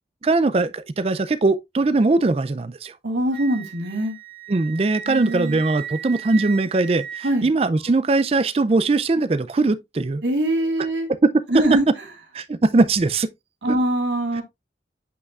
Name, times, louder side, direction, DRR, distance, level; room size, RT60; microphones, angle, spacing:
voice 1, 0.2-2.9 4.5-10.2 12.3-13.3 13.7-13.8, right 3 dB, 35° right, 0.4 m, -21 dB
voice 2, 3.0-4.2 5.1-5.6 7.2-7.5 10.2-11.1 11.5-11.8 13.6-14.4, right 1 dB, 85° right, 2.0 m, -22 dB
Wind instrument woodwind instrument, 3.3-7.9, right 10 dB, 55° right, 2.9 m, -37 dB
8.2 x 5.5 x 2.4 m
head